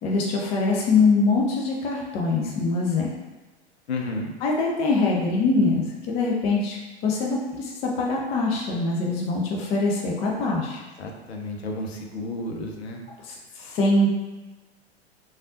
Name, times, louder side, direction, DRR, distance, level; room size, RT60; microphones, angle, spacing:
voice 1, 0.0-3.1 4.4-10.8 13.3-14.1, left 3 dB, 20° left, -1 dB, 0.3 m, -23 dB
voice 2, 3.9-4.3 10.6-10.7 11.0-13.0, left 2 dB, 75° left, 2 dB, 0.6 m, -32 dB
3.2 x 2.4 x 2.6 m, 1.2 s
figure-of-eight pair, 100°, 33 cm